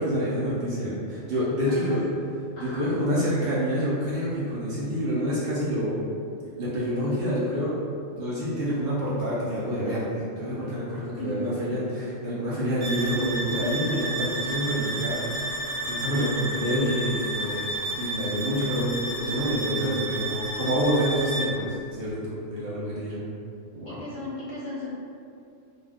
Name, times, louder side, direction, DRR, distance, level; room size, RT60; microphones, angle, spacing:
voice 1, 0.0-2.0 2.6-6.0 6.6-7.7 8.2-15.2 15.9-17.7 18.0-23.3 23.7-24.0, equal, 55° right, -9 dB, 0.7 m, -27 dB
voice 2, 1.7-2.0 2.6-2.9 3.2-3.3 11.2-11.9 23.9-24.9, left 2 dB, 60° left, -7 dB, 0.7 m, -36 dB
sound 1, 12.8-21.6, right 2 dB, 90° right, 1.1 m, -31 dB
2.3 x 2.2 x 3.3 m, 2.4 s
omnidirectional pair, 1.3 m